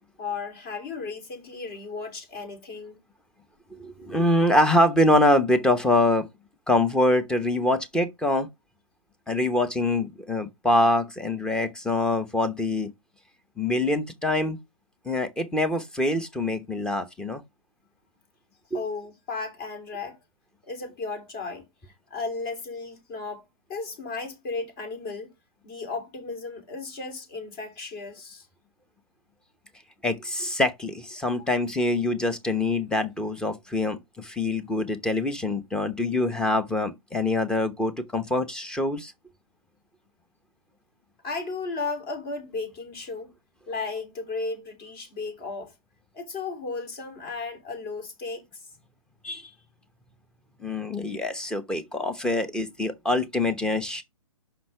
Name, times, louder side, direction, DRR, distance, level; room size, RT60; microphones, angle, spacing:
voice 1, 0.2-3.0 18.7-20.2 20.6-21.7 22.1-25.3 25.6-28.5 41.2-43.3 43.7-45.7 46.1-48.4, left 4 dB, 35° left, 3.0 m, -34 dB
voice 2, 3.7-6.3 6.7-8.5 9.3-12.9 13.6-14.6 15.0-17.4 18.7-18.8 30.0-39.1 49.2-49.5 50.6-54.0, left 1 dB, 5° left, 0.9 m, -24 dB
5.9 x 5.7 x 4.9 m
hypercardioid pair, 130°, 18 cm